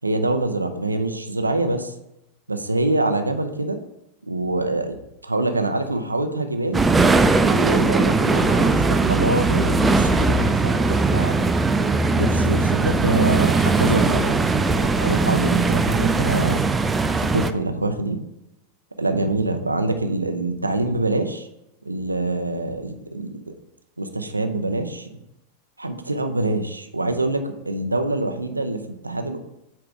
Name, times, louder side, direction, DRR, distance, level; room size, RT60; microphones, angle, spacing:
voice 1, 0.0-1.9 2.5-3.8 4.2-5.0 5.2-6.8 7.5-11.4 12.2-16.6 17.2-18.2 19.0-21.5 21.8-23.5 24.0-25.2 25.8-29.4, right 2 dB, 80° right, 7 dB, 0.6 m, -25 dB
sound 1, 6.7-17.5, right 3 dB, 15° right, 0.4 m, -19 dB
8.1 x 3.5 x 4.8 m, 0.88 s
figure-of-eight pair, 90°, 0 cm